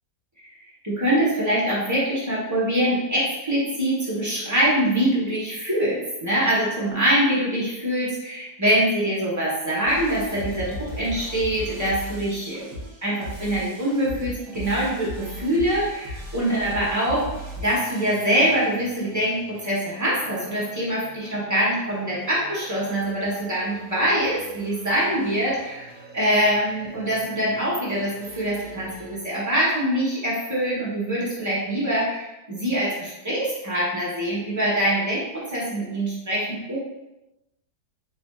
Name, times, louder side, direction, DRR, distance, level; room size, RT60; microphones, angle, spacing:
voice 1, 0.8-17.3 17.6-25.9 26.1-36.8, right 1 dB, 15° right, -7 dB, 0.7 m, -24 dB
sound 1, 9.9-29.2, equal, 55° right, 1.1 m, -40 dB
3.8 x 3.3 x 2.3 m, 0.96 s
omnidirectional pair, 1.7 m